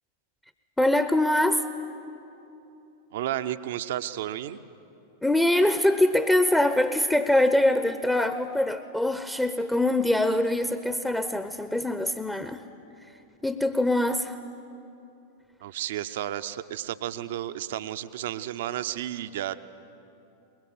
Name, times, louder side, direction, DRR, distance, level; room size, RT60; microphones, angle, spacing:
voice 1, 0.8-1.6 5.2-12.6 13.4-14.4, left 1 dB, 5° left, 11 dB, 0.9 m, -23 dB
voice 2, 3.1-4.6 15.6-19.5, right 12 dB, 55° right, 12 dB, 0.8 m, -32 dB
23.0 x 21.5 x 9.6 m, 2.9 s
figure-of-eight pair, 90°, 0 cm